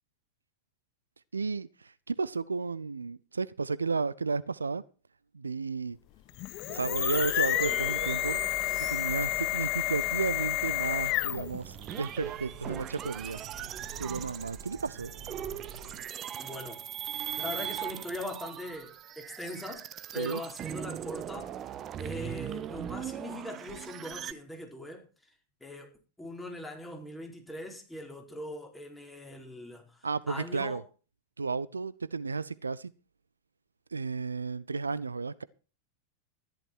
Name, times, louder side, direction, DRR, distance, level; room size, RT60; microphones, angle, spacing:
voice 1, 1.3-4.8 5.3-6.0 6.7-8.4 8.9-13.4 14.0-15.1 20.2-20.4 30.0-30.8 31.4-32.9 33.9-35.4, right 4 dB, 75° right, 0.6 m, -33 dB
sound 1, 6.3-11.6, left 19 dB, 40° left, 0.6 m, -30 dB
sound 2, 6.7-9.6 10.2-11.0 11.4-24.3, right 10 dB, 30° right, 0.9 m, -40 dB
sound 3, 6.7-16.1, right 6 dB, 50° right, 2.1 m, -45 dB
voice 2, 16.4-17.1 17.4-19.9 20.1-25.1 25.6-30.8, left 1 dB, 5° left, 4.6 m, -41 dB
14.0 x 12.0 x 4.6 m
figure-of-eight pair, 90°, 0 cm